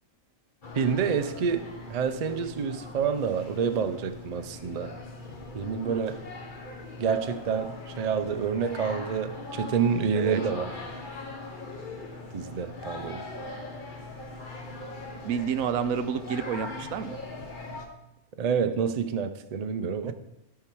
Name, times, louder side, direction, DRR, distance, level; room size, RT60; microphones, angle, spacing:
sound 1, 0.6-17.9, left 2 dB, 40° left, 1.3 m, -40 dB
voice 1, 0.7-4.9 5.5-6.2 7.0-10.7 12.3-13.2 18.4-20.1, right 6 dB, 45° right, 9 dB, 0.5 m, -28 dB
voice 2, 10.1-10.4 15.2-17.2 20.0-20.1, right 7 dB, 90° right, 11 dB, 1.1 m, -30 dB
12.5 x 5.7 x 4.6 m, 0.89 s
omnidirectional pair, 1.4 m